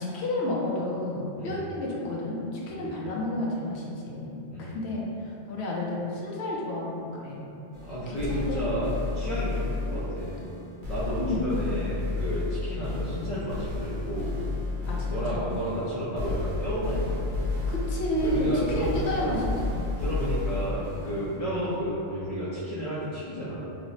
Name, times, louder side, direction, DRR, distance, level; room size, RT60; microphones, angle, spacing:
voice 1, 0.0-7.5 8.1-8.6 11.2-11.5 14.9-15.4 17.7-19.9 21.4-21.7, left 1 dB, 70° left, -4 dB, 0.9 m, -31 dB
sound 1, 7.7-21.4, left 3 dB, 50° right, 0.8 m, -32 dB
voice 2, 7.8-10.3 10.9-14.4 15.1-17.4 18.2-19.4 20.0-23.7, equal, 50° left, -10 dB, 0.4 m, -32 dB
3.1 x 2.0 x 3.9 m, 2.8 s
omnidirectional pair, 1.2 m